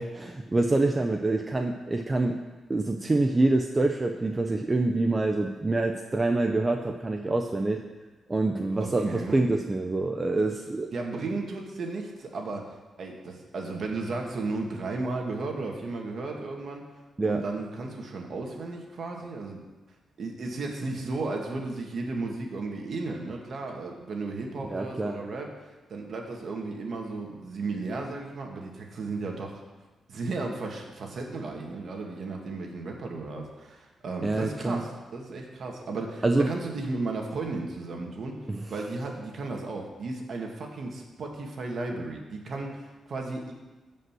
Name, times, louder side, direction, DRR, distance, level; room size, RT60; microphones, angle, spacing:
voice 1, 0.0-2.4 2.7-7.8 8.3-10.9 17.2-17.4 24.7-25.2 34.2-34.8 36.2-36.5 38.5-38.6, right 2 dB, 20° right, 3 dB, 0.6 m, -26 dB
voice 2, 8.8-9.5 10.9-16.9 17.2-19.6 20.2-25.5 25.9-29.6 30.1-38.4 38.7-43.5, right 3 dB, 50° right, 1 dB, 2.1 m, -34 dB
14.0 x 5.5 x 7.6 m, 1.2 s
wide cardioid pair, 145°, 0 cm